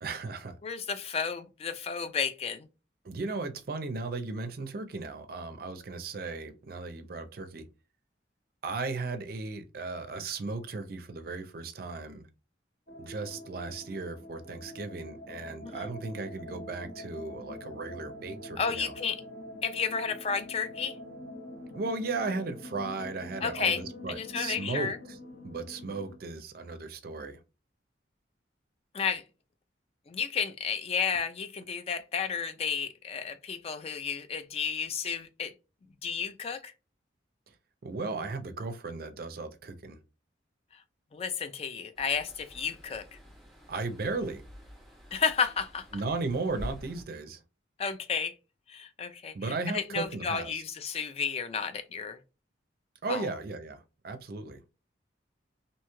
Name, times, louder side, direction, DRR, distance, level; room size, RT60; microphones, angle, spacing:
voice 1, 0.0-0.6 3.0-7.7 8.6-12.2 13.0-18.9 21.7-25.2 25.4-27.4 37.8-40.0 43.7-44.4 45.9-47.4 49.3-50.6 53.0-54.6, right 3 dB, 50° right, 0.4 m, -36 dB
voice 2, 0.6-2.7 15.6-15.9 18.6-19.2 19.6-21.0 23.4-23.8 24.1-25.0 28.9-29.2 30.1-35.5 36.0-36.7 41.1-43.0 45.1-45.8 47.8-48.3 48.7-52.2 53.1-53.3, left 6 dB, 30° left, 0.3 m, -32 dB
sound 1, 12.9-26.2, left 1 dB, 50° left, 0.8 m, -45 dB
sound 2, 41.9-47.0, equal, ahead, 0.7 m, -47 dB
2.7 x 2.3 x 2.9 m
head